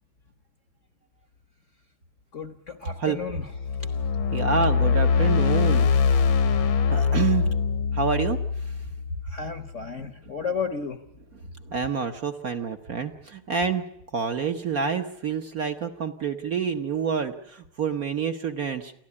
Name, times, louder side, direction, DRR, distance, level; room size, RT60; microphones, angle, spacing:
voice 1, 2.3-3.4 9.3-11.0, left 5 dB, 45° left, 9 dB, 1.1 m, -33 dB
sound 1, 3.5-9.7, left 5 dB, 70° left, 1.9 m, -23 dB
voice 2, 4.3-5.9 6.9-7.5 7.9-8.7 11.6-13.8 14.1-18.9, right 6 dB, 50° right, 5 dB, 1.3 m, -28 dB
29.0 x 12.0 x 9.8 m, 0.79 s
omnidirectional pair, 2.3 m